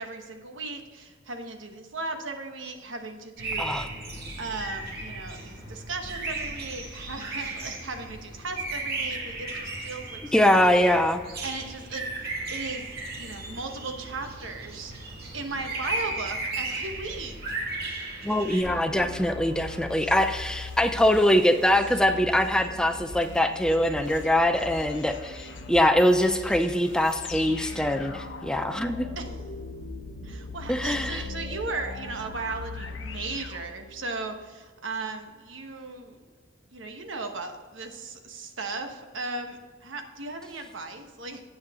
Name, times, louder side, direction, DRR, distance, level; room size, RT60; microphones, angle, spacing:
voice 1, 0.0-3.9 4.4-10.7 11.4-12.9 13.2-14.9 15.3-17.4 29.2-29.3 30.2-36.2 36.7-41.4, right 3 dB, 80° right, 5 dB, 1.1 m, -36 dB
sound 1, 3.4-18.6, right 2 dB, 55° right, 2.1 m, -35 dB
voice 2, 10.3-11.2 18.2-29.1 30.7-31.2, left 1 dB, 5° left, 8 dB, 0.4 m, -23 dB
sound 2, 18.6-34.3, left 3 dB, 70° left, 0.9 m, -39 dB
9.6 x 8.3 x 3.6 m, 1.5 s
head